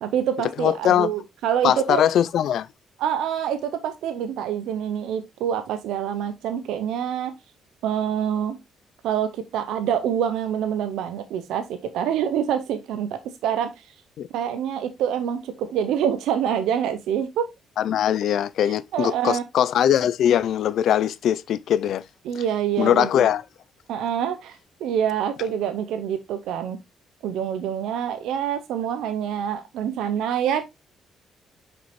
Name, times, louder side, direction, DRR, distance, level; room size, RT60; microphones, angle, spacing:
voice 1, 0.0-2.0 3.0-7.3 7.8-8.6 9.0-13.9 14.3-17.5 18.6-19.4 22.3-23.1 23.9-26.8 27.2-30.6, right 9 dB, 85° right, 0.6 m, -26 dB
voice 2, 0.6-1.1 1.6-2.7 14.2-14.3 17.8-22.0 22.8-23.4, left 10 dB, 70° left, 0.5 m, -21 dB
6.0 x 5.2 x 3.1 m
cardioid pair, 90°, 0 cm